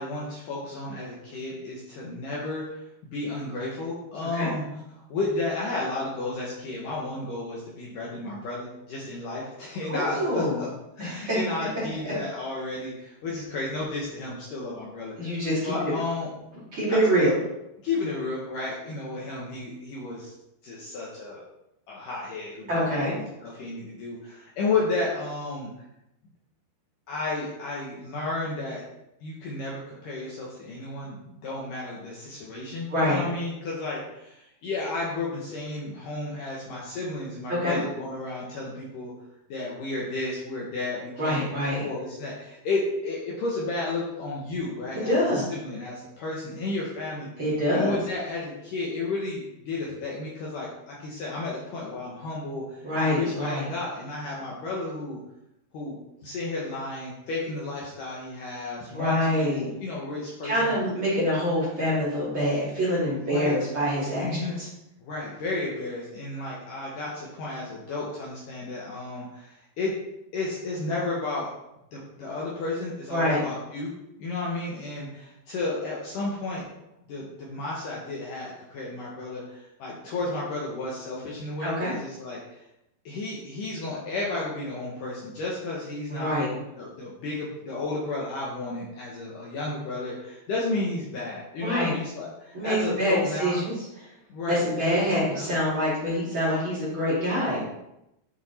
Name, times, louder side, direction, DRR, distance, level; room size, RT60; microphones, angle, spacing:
voice 1, 0.0-2.8 3.1-4.6 5.1-10.7 11.0-16.3 17.2-17.3 17.8-20.3 20.6-21.4 21.9-23.1 23.4-25.7 27.1-28.8 29.2-39.1 39.5-41.5 41.8-47.3 47.7-55.2 55.7-60.7 63.3-63.6 64.2-64.6 65.0-69.9 70.3-71.5 71.9-73.9 74.2-76.7 77.1-82.6 83.1-86.4 86.8-93.6 94.3-95.5, left 2 dB, 65° left, -4 dB, 2.3 m, -32 dB
voice 2, 9.9-10.6 11.0-11.4 12.0-12.1 15.2-15.9 16.7-17.3 22.7-23.1 32.9-33.2 37.5-37.8 41.2-41.8 44.9-45.4 47.4-47.9 52.8-53.7 58.9-59.7 60.4-64.3 64.6-64.7 73.1-73.4 81.6-81.9 86.1-86.5 91.6-91.9 92.5-94.1 94.5-97.6, equal, 30° right, -9 dB, 3.1 m, -25 dB
8.4 x 4.8 x 4.2 m, 0.86 s
omnidirectional pair, 4.8 m